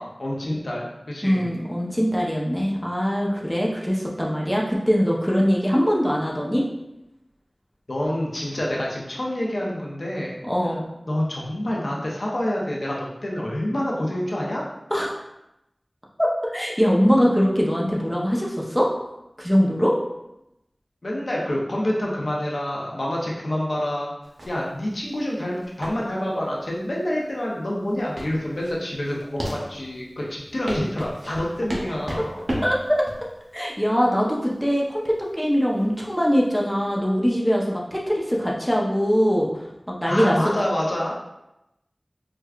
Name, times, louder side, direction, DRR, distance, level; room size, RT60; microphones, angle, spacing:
voice 1, 0.0-1.6 7.9-10.3 11.1-14.6 21.0-24.1 24.5-32.4 40.0-41.1, left 1 dB, 85° left, -3 dB, 0.6 m, -27 dB
voice 2, 1.2-6.6 10.4-10.8 14.9-15.1 16.5-18.9 19.4-20.0 32.6-33.0 33.5-39.5 39.9-40.4, equal, 5° left, -3 dB, 0.7 m, -22 dB
sound 1, 24.2-36.9, equal, 80° right, 0.7 m, -35 dB
4.6 x 2.2 x 2.4 m, 0.90 s
wide cardioid pair, 45°, 0 cm